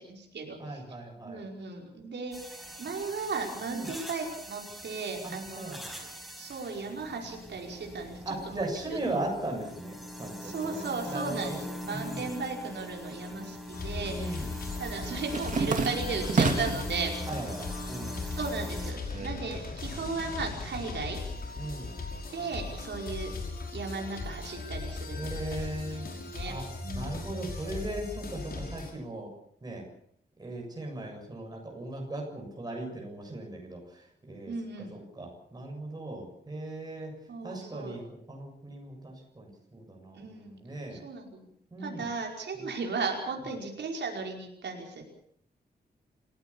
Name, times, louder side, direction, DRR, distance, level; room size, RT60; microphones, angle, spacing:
voice 1, 0.1-0.8 1.2-5.8 6.4-8.2 8.5-9.0 10.4-14.4 14.8-17.1 18.2-21.2 22.3-23.3 23.7-25.6 25.9-26.0 26.3-27.1 34.5-34.9 37.3-38.0 40.1-40.5 40.9-41.5 41.8-45.1, right 4 dB, 85° right, 1 dB, 5.2 m, -36 dB
voice 2, 0.6-1.4 3.7-3.9 5.2-6.1 8.3-12.3 14.1-14.5 17.3-18.3 21.6-21.9 25.1-26.1 26.4-26.7 26.9-29.3 29.6-29.9 30.4-37.1 37.4-41.0 41.7-42.1 42.5-42.6, right 2 dB, 20° right, 1 dB, 7.3 m, -38 dB
sound 1, 2.3-18.9, left 1 dB, ahead, 5.2 m, -42 dB
sound 2, 13.0-13.8 14.1-16.9 17.4-18.0 18.3-20.0, right 4 dB, 45° right, 3.0 m, -31 dB
sound 3, 13.7-28.9, left 3 dB, 60° left, 5.7 m, -38 dB
28.5 x 16.5 x 7.2 m, 0.67 s
wide cardioid pair, 180°, 18 cm